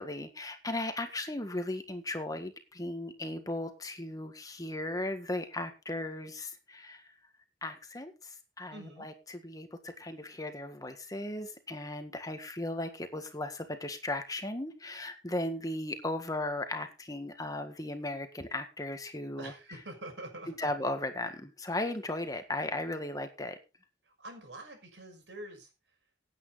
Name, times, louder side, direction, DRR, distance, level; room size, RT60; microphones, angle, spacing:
voice 1, 0.0-7.1 7.6-19.5 20.5-23.6, left 1 dB, 20° left, 7 dB, 1.7 m, -36 dB
voice 2, 8.7-9.1 19.4-20.7 24.2-25.7, right 1 dB, 70° right, 4 dB, 6.1 m, -45 dB
17.0 x 9.0 x 4.1 m, 0.29 s
head